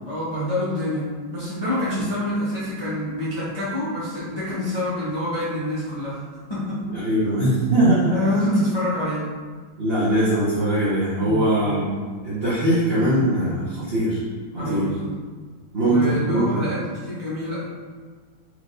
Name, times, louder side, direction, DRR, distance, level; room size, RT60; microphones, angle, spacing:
voice 1, 0.0-6.2 6.5-6.9 8.1-9.3 11.2-11.5 14.6-15.1 15.8-17.6, left 1 dB, 45° left, -11 dB, 0.3 m, -26 dB
voice 2, 6.9-8.3 9.8-11.9 12.2-14.2 14.5-14.9 15.7-16.6, right 1 dB, 50° right, -11 dB, 0.7 m, -21 dB
4.7 x 3.2 x 2.5 m, 1.5 s
omnidirectional pair, 2.4 m